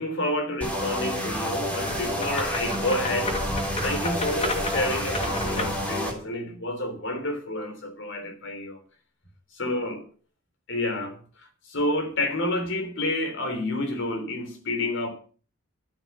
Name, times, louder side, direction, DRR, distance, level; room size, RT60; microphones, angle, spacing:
voice 1, 0.0-8.8 9.5-10.1 10.7-15.1, left 1 dB, 65° left, 3.5 m, -29 dB
sound 1, 0.6-6.1, equal, 5° left, 3.4 m, -29 dB
sound 2, 1.8-5.9, left 1 dB, 30° left, 2.8 m, -32 dB
13.0 x 9.1 x 7.3 m
head